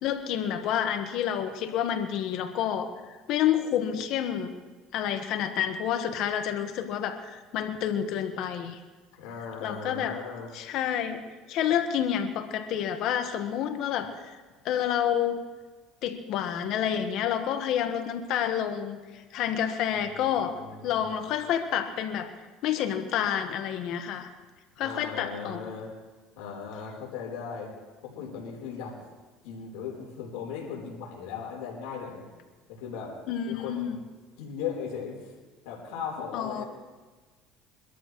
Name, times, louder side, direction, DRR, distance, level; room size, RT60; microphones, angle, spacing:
voice 1, 0.0-4.6 4.9-8.8 9.6-10.2 10.5-14.4 14.6-15.4 16.0-22.3 22.6-24.3 24.8-25.6 33.3-34.0 36.3-36.6, left 9 dB, 65° left, 6 dB, 1.4 m, -29 dB
voice 2, 9.2-10.5 20.2-21.3 24.8-25.9 26.4-27.7 28.0-29.0 29.4-32.2 32.7-33.2 33.5-34.0 34.4-35.2 35.6-36.7, left 6 dB, 80° left, -2 dB, 3.9 m, -37 dB
24.5 x 13.0 x 3.2 m, 1.3 s
supercardioid pair, 105°, 0 cm